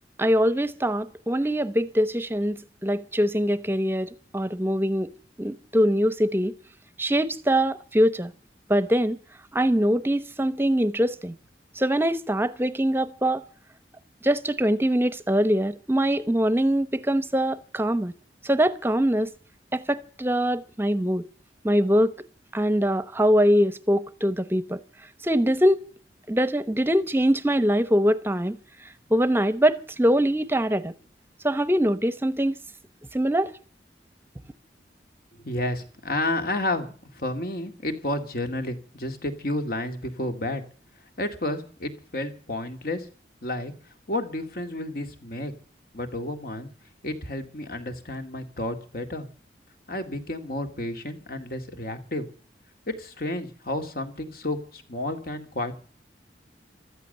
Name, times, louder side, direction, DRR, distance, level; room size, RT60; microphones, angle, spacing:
voice 1, 0.2-5.1 5.4-6.5 7.0-8.3 8.7-9.2 9.5-11.3 11.8-13.4 14.2-18.1 18.4-19.3 19.7-21.3 21.6-22.1 22.5-24.8 25.2-25.8 26.3-28.6 29.1-30.9 31.4-32.6 33.1-33.5, equal, 15° right, 0.9 m, -23 dB
voice 2, 35.4-40.6 41.2-43.1 43.4-43.7 44.1-45.5 45.9-46.7 47.0-49.3 49.9-52.3 52.9-55.8, left 1 dB, 55° left, 2.3 m, -31 dB
15.0 x 13.5 x 6.7 m
head